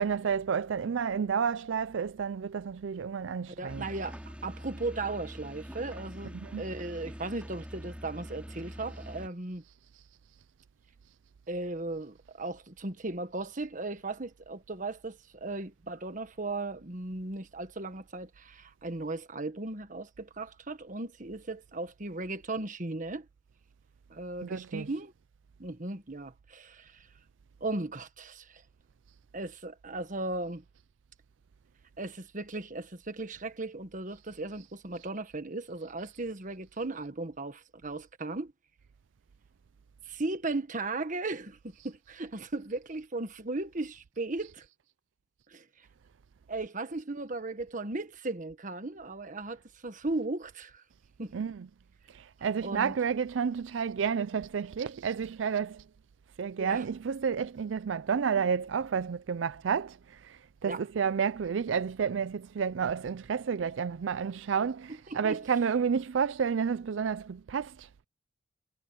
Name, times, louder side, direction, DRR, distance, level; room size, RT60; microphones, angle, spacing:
voice 1, 0.0-3.8 6.4-6.6 24.4-24.9 51.3-51.6 52.1-55.8 56.4-60.0 60.3-67.9, right 6 dB, 85° right, 0.4 m, -30 dB
voice 2, 3.5-9.6 11.5-23.2 24.1-25.1 25.6-27.1 27.6-28.6 29.3-30.6 32.0-38.5 40.1-41.6 41.8-44.6 45.5-45.6 46.5-50.8 51.2-51.3 52.6-52.9 56.6-56.8 60.6-60.8 65.1-65.4, right 2 dB, 45° right, 1.4 m, -36 dB
sound 1, 3.7-9.3, equal, 5° right, 3.1 m, -44 dB
head